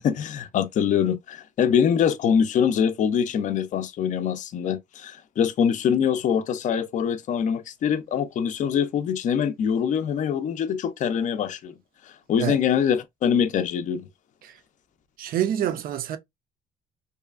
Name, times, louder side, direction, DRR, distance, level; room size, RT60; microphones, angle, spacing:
voice 1, 0.0-11.7 12.3-14.1, left 8 dB, 50° left, 0.4 m, -24 dB
voice 2, 15.2-16.2, right 10 dB, 60° right, 0.5 m, -26 dB
2.7 x 2.3 x 2.3 m
cardioid pair, 110°, 17 cm